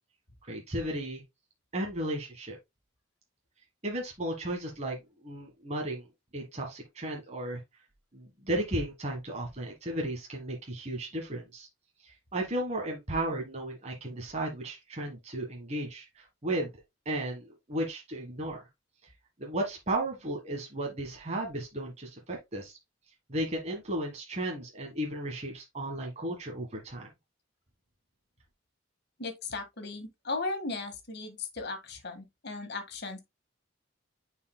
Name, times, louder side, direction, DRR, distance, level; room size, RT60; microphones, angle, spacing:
voice 1, 0.5-1.2 1.7-2.6 3.8-5.0 5.2-6.1 6.3-7.6 8.1-11.7 12.0-16.7 17.0-18.6 19.4-22.8 23.3-27.1, right 1 dB, 35° right, 1.5 m, -34 dB
voice 2, 29.2-33.2, left 3 dB, 55° left, 1.7 m, -36 dB
9.5 x 4.7 x 2.2 m
head